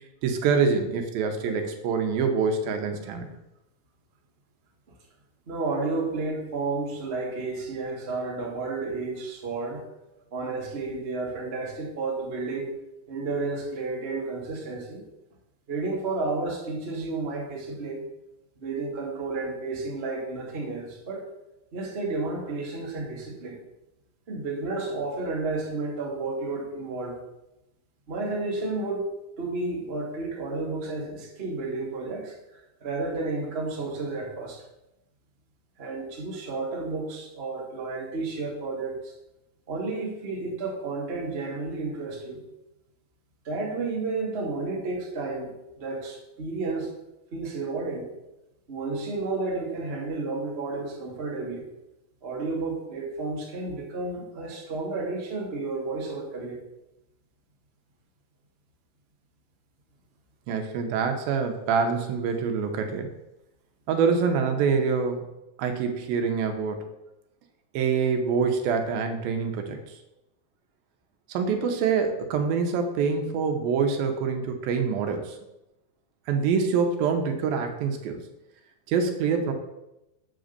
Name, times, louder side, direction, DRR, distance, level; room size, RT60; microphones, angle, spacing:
voice 1, 0.2-3.3 60.5-63.1 63.9-65.2 65.6-66.9 67.7-69.8 71.3-75.4 76.3-78.2 78.9-79.5, right 5 dB, 85° right, 5 dB, 2.6 m, -25 dB
voice 2, 5.5-9.8 10.3-12.7 13.1-15.0 15.7-18.0 18.6-21.3 21.7-23.6 24.3-27.2 28.1-29.1 29.4-32.3 32.8-34.6 35.8-39.1 39.7-42.4 43.4-46.9 47.3-48.1 48.7-51.6 52.2-56.6, right 3 dB, 35° right, -3 dB, 0.9 m, -31 dB
7.9 x 3.9 x 6.5 m, 0.91 s
omnidirectional pair, 4.1 m